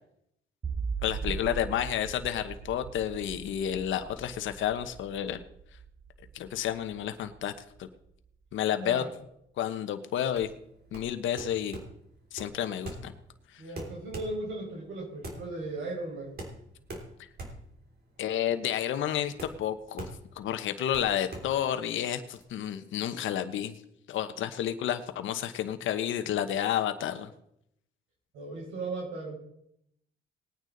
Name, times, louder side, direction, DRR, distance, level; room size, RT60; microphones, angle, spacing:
sound 1, 0.6-7.8, right 5 dB, 35° right, 1.3 m, -39 dB
voice 1, 1.0-5.4 6.3-7.5 7.8-7.9 8.5-9.0 9.6-10.5 10.9-11.8 12.3-13.1 13.5-13.6 18.2-20.1 20.4-23.7 24.1-27.3, left 10 dB, 75° left, 9 dB, 1.0 m, -30 dB
sound 2, 10.3-22.4, right 2 dB, 50° right, 3.4 m, -44 dB
voice 2, 13.6-16.4 28.3-29.4, right 2 dB, 90° right, -1 dB, 5.3 m, -37 dB
19.5 x 9.4 x 4.0 m, 0.75 s
cardioid pair, 90°, 20 cm